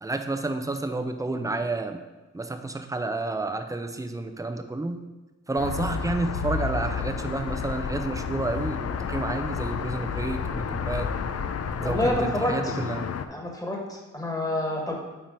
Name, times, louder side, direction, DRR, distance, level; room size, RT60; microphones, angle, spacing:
voice 1, 0.0-2.0 2.3-5.0 5.5-11.1 11.8-13.0, right 2 dB, 10° right, 7 dB, 0.7 m, -30 dB
sound 1, 5.6-13.2, left 6 dB, 50° left, 0.5 m, -31 dB
voice 2, 11.8-12.8 13.3-14.9, left 1 dB, 10° left, -1 dB, 1.7 m, -28 dB
8.8 x 3.8 x 4.5 m, 1.1 s
cardioid pair, 65°, 32 cm